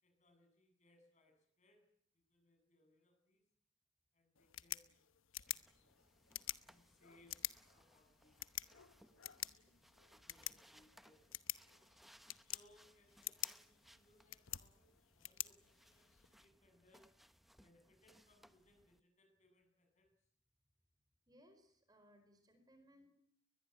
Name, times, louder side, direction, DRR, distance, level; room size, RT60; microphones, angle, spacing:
voice 1, 0.0-1.8 2.1-3.4 4.1-5.1 5.7-6.0 6.6-7.4 7.7-9.6 10.1-11.6 12.5-17.1 17.6-20.1, left 1 dB, 35° left, 4 dB, 7.5 m, -71 dB
sound 1, 4.3-16.3, left 14 dB, 85° left, 1.0 m, -49 dB
sound 2, 5.5-19.0, equal, ahead, 1.0 m, -68 dB
voice 2, 21.3-23.1, equal, 20° right, 6 dB, 4.6 m, -66 dB
22.5 x 21.0 x 9.2 m, 0.70 s
head